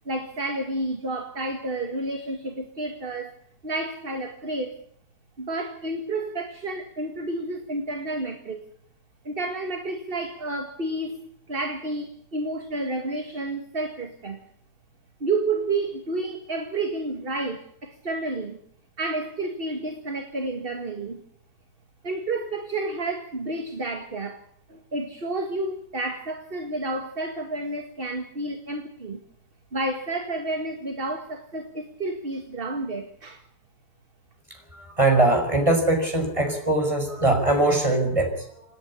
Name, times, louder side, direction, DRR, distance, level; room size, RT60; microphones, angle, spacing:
voice 1, 0.1-3.3 3.6-4.8 5.4-8.6 9.2-11.2 11.5-14.4 15.2-18.6 19.0-21.2 22.0-24.4 24.7-29.2 29.7-33.4, right 2 dB, 35° right, 4 dB, 2.2 m, -30 dB
voice 2, 34.5-38.6, right 2 dB, 20° right, 3 dB, 5.9 m, -22 dB
28.0 x 10.5 x 9.8 m, 0.70 s
omnidirectional pair, 1.7 m